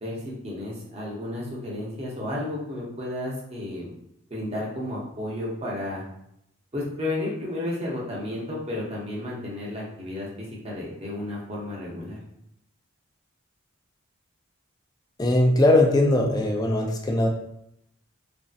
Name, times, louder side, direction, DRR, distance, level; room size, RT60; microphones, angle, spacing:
voice 1, 0.0-3.9 4.3-6.0 6.7-12.2, left 1 dB, 30° right, -4 dB, 0.7 m, -32 dB
voice 2, 15.2-17.3, left 1 dB, 20° left, 2 dB, 0.3 m, -20 dB
3.0 x 2.6 x 2.4 m, 0.77 s
head